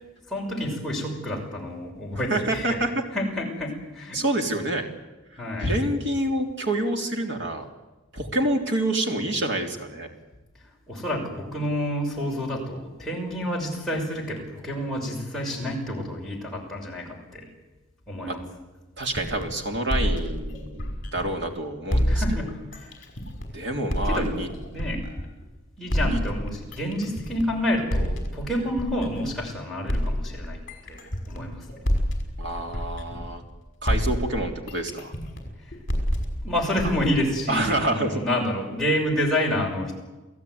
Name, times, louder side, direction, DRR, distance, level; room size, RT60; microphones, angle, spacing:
voice 1, 0.3-2.8 3.1-4.2 5.4-5.7 10.9-17.5 18.1-18.4 22.1-22.9 24.0-24.3 24.7-25.1 25.8-30.6 30.9-31.8 35.6-35.7 36.4-40.0, equal, ahead, -4 dB, 6.1 m, -29 dB
voice 2, 2.3-2.9 4.1-4.9 5.6-7.7 8.1-10.1 18.3-18.4 19.0-22.2 23.5-24.5 25.9-26.2 32.4-33.4 33.8-35.1 37.5-38.2, right 1 dB, 55° right, 3 dB, 3.4 m, -27 dB
sound 1, 19.0-21.5 21.9-25.4 25.9-29.4 29.9-33.6 33.9-37.9, equal, 45° left, 5.7 m, -28 dB
29.0 x 16.5 x 9.6 m, 1.1 s
head